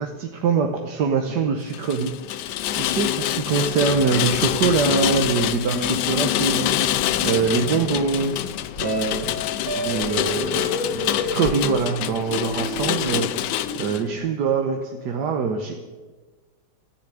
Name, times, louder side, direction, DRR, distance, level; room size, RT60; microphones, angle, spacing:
voice 1, 0.0-2.2 2.7-8.3 8.8-9.4 9.7-15.9, right 5 dB, 70° right, 4 dB, 1.6 m, -24 dB
Rain, 1.7-14.0, left 13 dB, 75° left, 1.2 m, -26 dB
sound 1, 3.7-10.5, left 1 dB, 15° left, 3.6 m, -42 dB
sound 2, 5.7-14.2, left 2 dB, 50° left, 3.4 m, -32 dB
14.0 x 10.0 x 8.4 m, 1.3 s
omnidirectional pair, 1.9 m